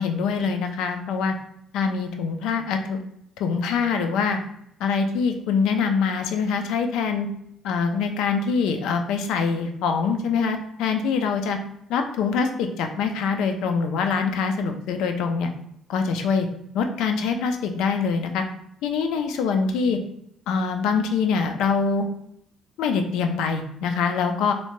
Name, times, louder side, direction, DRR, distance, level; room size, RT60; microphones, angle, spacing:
voice 1, 0.0-1.3 1.7-3.0 3.4-4.4 4.8-7.3 7.6-11.6 11.9-15.5 15.9-16.5 16.7-18.4 18.8-20.0 20.5-22.1 22.8-24.5, left 5 dB, 80° left, 6 dB, 0.3 m, -24 dB
2.7 x 2.1 x 3.0 m, 0.75 s
cardioid pair, 175°, 0 cm